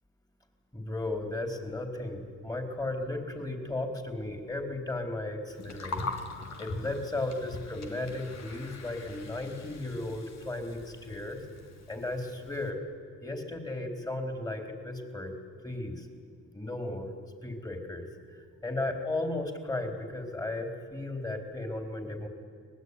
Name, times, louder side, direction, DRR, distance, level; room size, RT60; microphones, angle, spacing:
voice 1, 0.7-6.0 6.6-11.4 11.9-12.8 13.2-15.3 15.6-16.1 16.5-17.1 17.4-22.3, left 2 dB, 10° left, 5 dB, 4.1 m, -35 dB
Gurgling, 5.5-12.7, left 3 dB, 60° left, 3.1 m, -42 dB
24.5 x 20.0 x 9.9 m, 2.2 s
cardioid pair, 90°, 30 cm